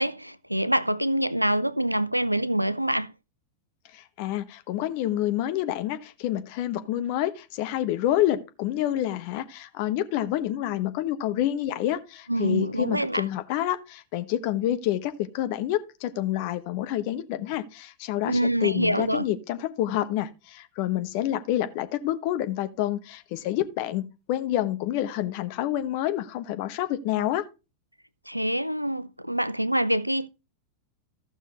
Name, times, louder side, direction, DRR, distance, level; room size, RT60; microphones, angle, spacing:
voice 1, 0.0-3.1 12.3-13.2 18.2-19.2 28.3-30.3, right 1 dB, 90° right, 0.5 m, -25 dB
voice 2, 3.9-27.5, left 13 dB, 45° left, 1.0 m, -28 dB
15.0 x 6.2 x 3.0 m
figure-of-eight pair, 90°, 0 cm